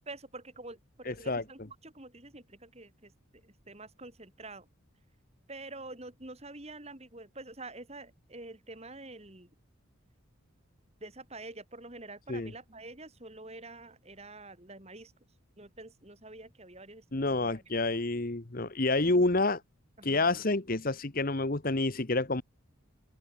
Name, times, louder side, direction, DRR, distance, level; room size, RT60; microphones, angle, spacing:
voice 1, 0.0-4.7 5.5-9.5 11.0-15.1 15.6-17.7 19.0-19.1 20.0-20.4, right 2 dB, 30° right, 3.1 m, -47 dB
voice 2, 1.1-1.4 12.3-12.5 17.1-19.6 20.0-22.4, left 2 dB, 40° left, 1.2 m, -28 dB
open air
head